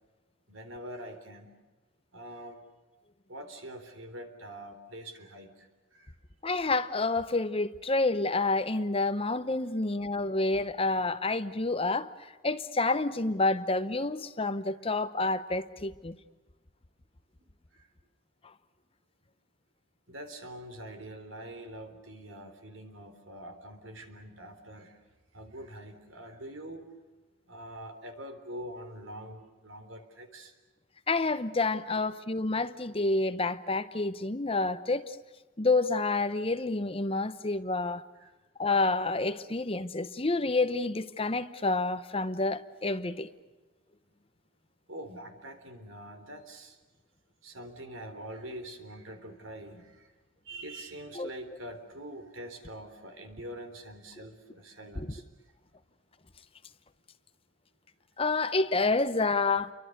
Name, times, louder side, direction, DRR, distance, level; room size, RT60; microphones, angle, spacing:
voice 1, 0.5-1.5 2.1-2.6 3.3-6.2 14.8-14.9 17.7-17.9 20.1-25.0 25.3-26.9 27.5-30.5 31.9-32.0 37.2-37.3 38.2-38.3 44.9-46.8 47.4-50.1 50.4-55.3, right 1 dB, 75° right, 3.8 m, -44 dB
voice 2, 6.4-12.1 12.4-16.2 31.1-35.2 35.6-38.0 38.6-43.3 51.2-51.3 55.0-55.1 58.2-59.7, left 3 dB, 30° left, 0.9 m, -28 dB
29.5 x 24.0 x 6.7 m
head